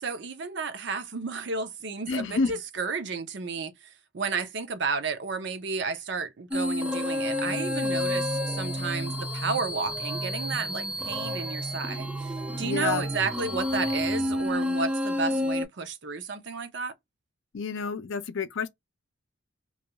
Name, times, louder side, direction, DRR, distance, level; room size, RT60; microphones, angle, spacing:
voice 1, 0.0-3.7 4.1-16.9, right 4 dB, 60° right, 0.5 m, -32 dB
voice 2, 2.1-2.5 12.6-13.1 17.5-18.7, left 5 dB, 75° left, 0.5 m, -29 dB
sound 1, 6.5-15.7, left 1 dB, 5° right, 0.4 m, -30 dB
2.3 x 2.3 x 2.8 m
head